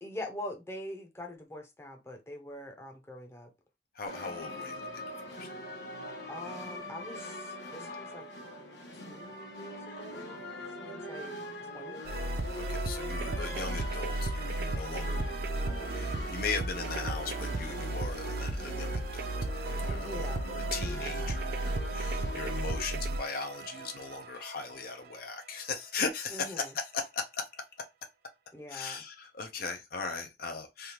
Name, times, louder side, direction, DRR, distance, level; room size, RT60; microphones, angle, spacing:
voice 1, 0.0-3.5 6.3-8.2 8.9-10.4 10.8-11.4 11.6-12.0 20.0-20.5 26.3-26.7 28.5-29.0, left 1 dB, 15° left, 0.7 m, -43 dB
voice 2, 3.9-5.5 10.9-11.0 12.6-15.5 15.9-19.3 19.7-27.6 28.7-30.9, left 4 dB, 55° left, 0.5 m, -38 dB
sound 1, 4.1-22.8, left 1 dB, 75° left, 1.1 m, -42 dB
sound 2, 12.1-25.2, right 2 dB, 55° right, 0.4 m, -34 dB
3.3 x 2.3 x 2.8 m
head